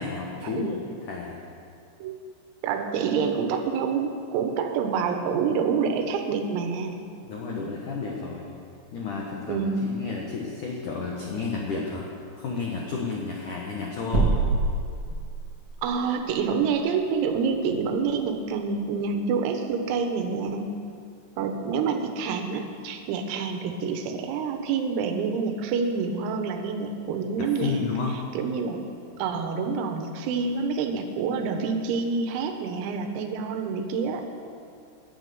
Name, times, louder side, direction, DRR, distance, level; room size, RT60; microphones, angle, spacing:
voice 1, 0.0-1.4 7.2-8.5 8.9-12.0 12.4-14.3 15.1-15.2 27.4-28.2, left 4 dB, 80° left, -1 dB, 1.8 m, -32 dB
voice 2, 2.6-7.2 9.5-9.9 15.8-20.9 21.4-27.8 28.3-28.9 29.2-34.2, right 5 dB, 90° right, 6 dB, 4.0 m, -27 dB
sound 1, 14.1-15.7, right 3 dB, 70° right, 1.0 m, -24 dB
18.0 x 11.0 x 7.0 m, 2.4 s
omnidirectional pair, 6.0 m